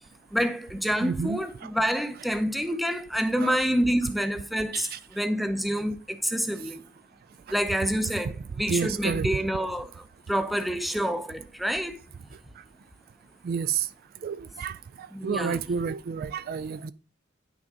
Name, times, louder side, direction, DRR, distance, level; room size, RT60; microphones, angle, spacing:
voice 1, 0.3-6.8 7.5-8.3 8.6-9.9 10.3-12.0 15.1-15.6, equal, ahead, 0.7 m, -27 dB
voice 2, 1.0-1.7 3.4-3.6 4.7-5.0 8.7-9.3 13.4-13.9 14.2-16.9, right 6 dB, 45° right, 0.3 m, -30 dB
10.0 x 6.1 x 3.8 m
head